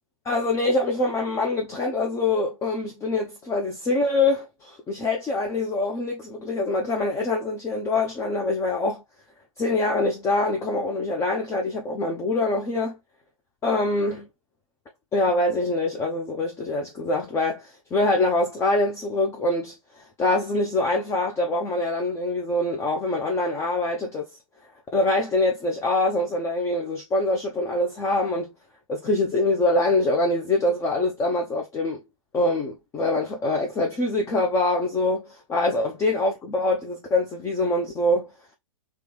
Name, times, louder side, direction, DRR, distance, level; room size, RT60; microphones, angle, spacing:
voice 1, 0.2-9.0 9.6-13.0 13.6-14.2 15.1-24.3 24.9-28.5 28.9-32.0 32.3-38.3, left 2 dB, 15° left, 0.6 m, -24 dB
3.0 x 3.0 x 3.1 m
figure-of-eight pair, 110°, 18 cm